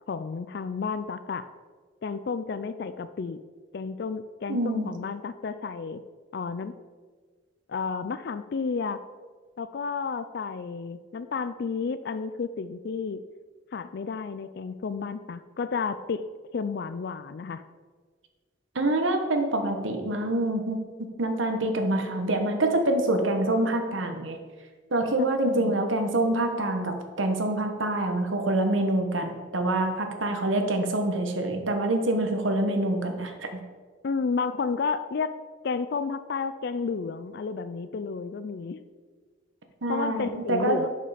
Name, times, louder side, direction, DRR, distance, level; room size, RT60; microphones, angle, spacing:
voice 1, 0.1-1.5 2.0-3.4 3.7-6.0 6.3-6.7 7.7-9.0 9.6-13.2 13.7-16.2 16.5-17.6 25.4-25.8 34.0-35.4 35.6-38.8 39.9-40.9, left 5 dB, 55° left, 12 dB, 0.4 m, -31 dB
voice 2, 4.5-4.9 18.7-20.8 21.2-24.4 24.9-33.5 39.8-40.8, right 1 dB, 80° right, 5 dB, 1.2 m, -26 dB
11.0 x 5.5 x 5.0 m, 1.5 s
head